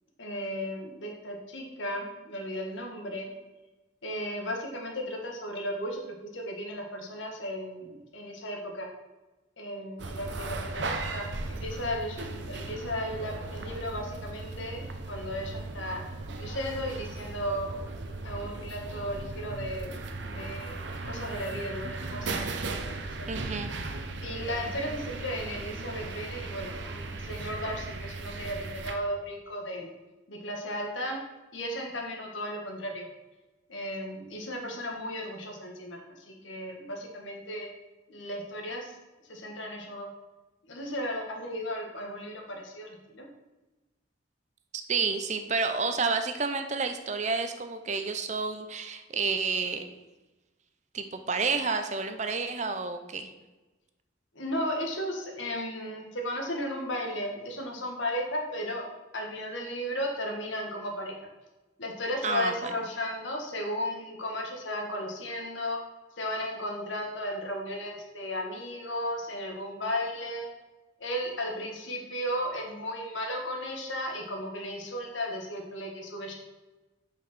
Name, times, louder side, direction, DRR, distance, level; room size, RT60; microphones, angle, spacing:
voice 1, 0.2-3.3 4.0-6.0 6.3-8.9 9.6-16.0 16.4-17.8 18.2-23.3 24.2-29.9 30.3-31.2 31.5-33.1 33.7-36.0 36.3-37.7 38.1-38.9 39.3-40.1 40.7-43.3 54.4-58.8 59.1-61.1 61.8-65.8 66.2-70.5 71.0-76.3, equal, 85° left, 1 dB, 1.8 m, -35 dB
sound 1, 10.0-29.0, right 3 dB, 70° right, 0.8 m, -37 dB
voice 2, 23.3-23.7 44.9-49.8 50.9-53.3 62.2-62.7, right 4 dB, 40° right, 8 dB, 0.6 m, -30 dB
6.0 x 5.9 x 6.1 m, 1.1 s
head